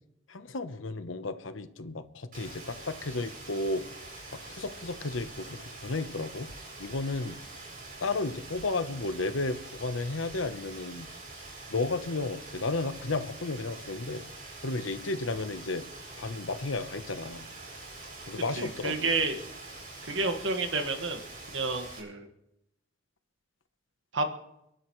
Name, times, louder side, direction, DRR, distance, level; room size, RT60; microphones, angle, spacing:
voice 1, 0.3-3.8 4.5-6.5 6.8-7.4 8.0-11.1 11.7-14.2 14.6-15.8 16.1-17.5 18.3-19.1, left 3 dB, 90° left, 10 dB, 1.0 m, -33 dB
Rain, 2.3-22.0, right 2 dB, 45° right, 7.3 m, -45 dB
voice 2, 18.6-19.4 20.1-21.2 21.5-22.3 24.1-24.3, right 3 dB, 75° right, 5 dB, 1.8 m, -30 dB
30.0 x 11.0 x 3.2 m, 0.83 s
head